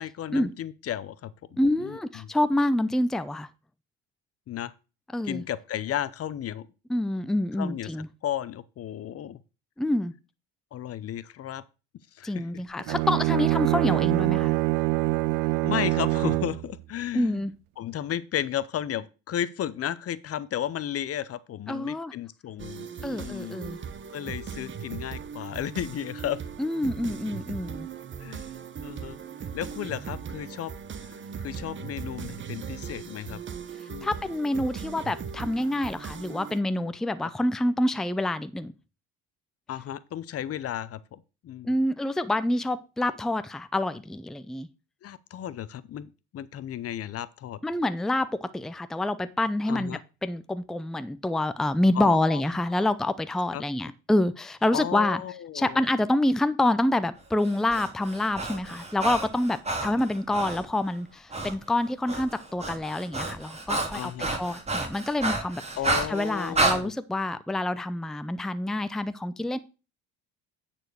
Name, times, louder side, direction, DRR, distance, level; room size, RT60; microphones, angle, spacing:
voice 1, 0.0-2.3 4.5-4.7 5.2-6.7 7.6-7.9 8.2-9.4 10.7-11.6 12.1-12.6 15.6-17.4 17.8-23.6 24.1-26.4 28.2-28.5 28.8-29.2 29.5-30.7 31.0-31.1 31.4-33.4 33.9-34.1 37.2-37.3 39.7-41.7 45.0-47.6 49.7-50.0 51.9-52.4 52.7-52.9 53.5-53.6 54.7-55.8 63.9-64.3 65.8-66.9, left 11 dB, 45° left, 0.8 m, -34 dB
voice 2, 1.6-3.5 5.1-5.4 6.9-8.1 9.8-10.1 12.2-14.6 17.1-17.5 21.7-22.1 23.0-23.8 26.6-27.9 34.0-38.7 41.6-44.7 47.6-55.2 55.5-65.6 66.1-69.6, left 1 dB, ahead, 0.6 m, -27 dB
Bowed string instrument, 12.8-16.7, right 21 dB, 70° right, 0.5 m, -24 dB
sound 1, 22.6-36.6, right 7 dB, 35° right, 1.0 m, -39 dB
Breathing, 57.4-60.6 61.3-61.5 61.8-66.8, right 2 dB, 20° right, 2.5 m, -30 dB
9.5 x 4.4 x 6.3 m
supercardioid pair, 80°, 33 cm